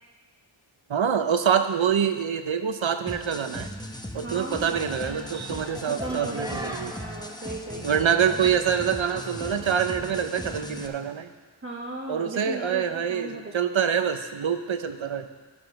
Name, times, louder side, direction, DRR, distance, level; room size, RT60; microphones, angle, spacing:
voice 1, 0.9-3.7 4.1-6.9 7.8-11.3 12.1-15.3, right 7 dB, 75° right, 9 dB, 0.8 m, -25 dB
sound 1, 3.1-10.9, left 1 dB, 10° left, 0.8 m, -38 dB
voice 2, 4.2-4.8 5.9-8.5 11.6-13.5, right 2 dB, 25° right, -1 dB, 1.0 m, -37 dB
sound 2, 4.7-9.8, right 1 dB, 10° right, 1.5 m, -42 dB
11.5 x 7.0 x 5.9 m, 1.4 s
wide cardioid pair, 55°, 47 cm